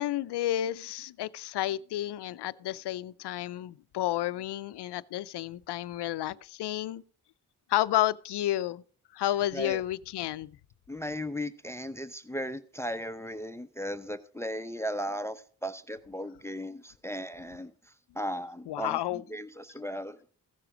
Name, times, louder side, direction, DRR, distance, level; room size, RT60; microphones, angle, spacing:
voice 1, 0.0-7.0 7.7-8.8 9.1-10.5 18.7-19.2, left 13 dB, 90° left, 0.5 m, -31 dB
voice 2, 10.9-17.7 18.1-19.0 19.3-20.2, equal, 5° left, 0.7 m, -36 dB
15.5 x 6.8 x 4.9 m
cardioid pair, 50°, 39 cm